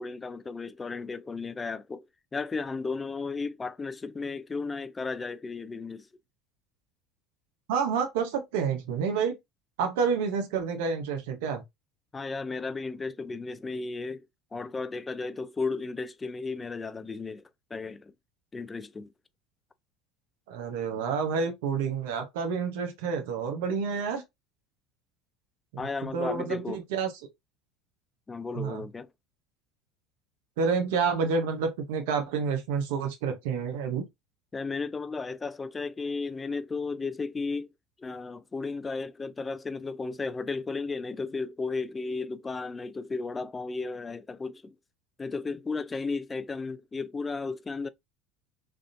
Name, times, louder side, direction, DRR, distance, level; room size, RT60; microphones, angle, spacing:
voice 1, 0.0-2.1 2.3-6.1 12.1-14.3 14.5-17.4 17.7-18.1 18.5-19.1 25.8-26.8 28.3-29.1 34.5-37.7 38.0-44.8 45.2-47.9, left 4 dB, 20° left, 0.4 m, -34 dB
voice 2, 7.7-9.4 9.8-11.6 20.5-24.2 26.0-27.1 28.5-28.8 30.6-34.1, right 5 dB, 80° right, 0.8 m, -29 dB
3.4 x 2.5 x 2.5 m
supercardioid pair, 100°, 0 cm